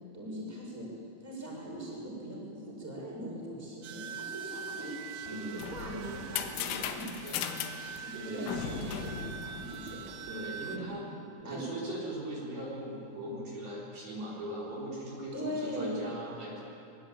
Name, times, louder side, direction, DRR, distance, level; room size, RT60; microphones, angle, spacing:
voice 1, 0.1-0.9 1.2-7.4 7.9-10.2 10.7-10.9 11.4-11.6 15.3-16.0, right 1 dB, 5° right, -3 dB, 5.5 m, -40 dB
sound 1, 3.8-10.8, right 6 dB, 80° right, 2.1 m, -44 dB
voice 2, 5.2-5.6 8.1-8.5 10.3-11.1 11.5-16.6, right 1 dB, 50° right, -5 dB, 5.5 m, -40 dB
sound 2, 5.3-10.3, left 8 dB, 85° left, 3.8 m, -38 dB
23.0 x 22.0 x 8.9 m, 2.6 s
omnidirectional pair, 5.6 m